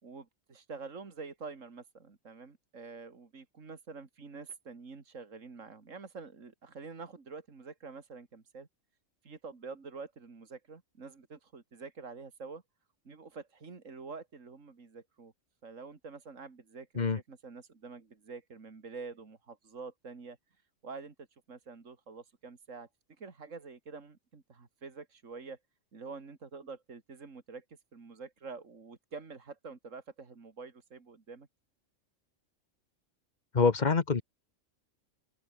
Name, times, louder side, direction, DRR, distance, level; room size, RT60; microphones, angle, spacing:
voice 1, 0.0-8.7 9.2-12.6 13.0-15.3 15.6-20.4 20.8-21.1 21.5-22.9 23.2-25.6 25.9-27.6 27.9-31.5, right 4 dB, 70° right, 2.8 m, -47 dB
voice 2, 33.5-34.2, left 4 dB, 35° left, 1.1 m, -25 dB
open air
omnidirectional pair, 1.4 m